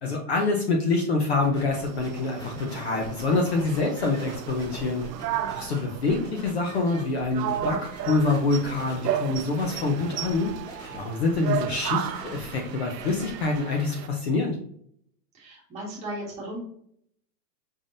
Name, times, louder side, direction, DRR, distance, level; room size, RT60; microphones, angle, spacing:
voice 1, 0.0-5.0 5.5-7.8 8.1-10.5 11.0-14.6, left 3 dB, 40° left, 1 dB, 0.6 m, -26 dB
sound 1, 1.4-8.9 9.3-11.0 11.3-13.6, right 1 dB, 10° left, 1.2 m, -42 dB
sound 2, 1.7-14.1, right 10 dB, 80° right, 0.6 m, -34 dB
voice 2, 15.3-16.6, right 1 dB, 15° right, -6 dB, 1.5 m, -36 dB
5.4 x 3.5 x 2.5 m, 0.65 s
hypercardioid pair, 170°, 49 cm